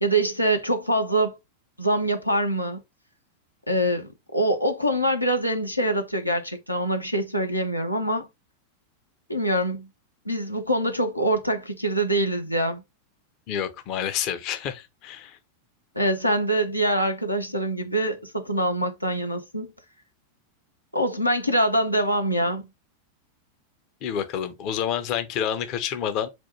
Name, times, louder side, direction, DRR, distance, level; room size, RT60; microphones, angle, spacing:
voice 1, 0.0-1.4 1.8-2.8 3.7-8.3 9.3-9.9 10.3-12.8 16.0-19.7 20.9-22.7, right 1 dB, 90° left, 0.7 m, -24 dB
voice 2, 13.5-15.4 24.0-26.3, left 9 dB, 40° left, 0.5 m, -28 dB
4.3 x 2.3 x 4.3 m
figure-of-eight pair, 90°, 0 cm